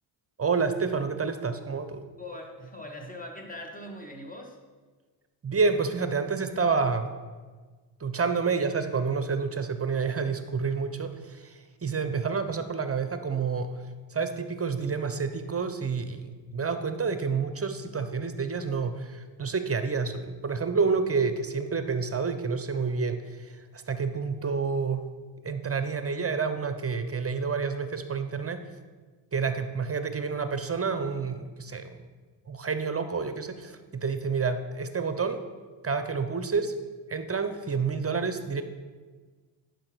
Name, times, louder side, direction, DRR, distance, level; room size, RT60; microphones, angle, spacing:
voice 1, 0.4-2.0 5.4-7.1 8.0-13.7 14.1-23.5 23.7-25.0 25.4-28.6 29.3-32.0 32.5-35.4 35.8-36.7 37.1-38.6, right 5 dB, 30° right, 10 dB, 0.9 m, -29 dB
voice 2, 2.2-4.6, left 1 dB, 15° left, 2 dB, 1.8 m, -41 dB
10.5 x 5.1 x 6.2 m, 1.4 s
supercardioid pair, 60°, 47 cm